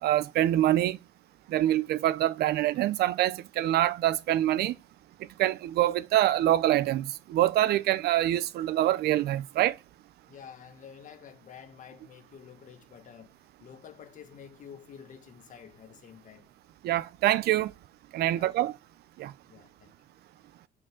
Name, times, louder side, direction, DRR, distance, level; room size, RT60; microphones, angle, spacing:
voice 1, 0.0-1.0 1.5-4.8 5.2-9.8 16.8-17.7 18.1-18.7 19.2-19.3, right 13 dB, 70° right, 0.6 m, -25 dB
voice 2, 10.3-16.5 18.3-18.7 19.5-19.9, left 8 dB, 50° left, 1.7 m, -50 dB
8.8 x 5.0 x 3.7 m
cardioid pair, 110°, 17 cm